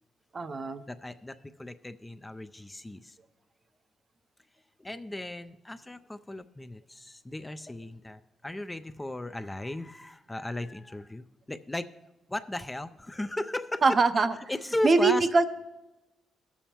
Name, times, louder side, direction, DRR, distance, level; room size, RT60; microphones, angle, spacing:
voice 1, 0.3-0.8 13.8-14.3 14.8-15.4, right 3 dB, 40° right, 11 dB, 0.6 m, -23 dB
voice 2, 0.9-3.2 4.8-11.9 12.3-13.8 14.2-15.3, left 1 dB, 15° left, 10 dB, 0.4 m, -36 dB
16.5 x 7.0 x 2.9 m, 1.0 s
cardioid pair, 90°, 0 cm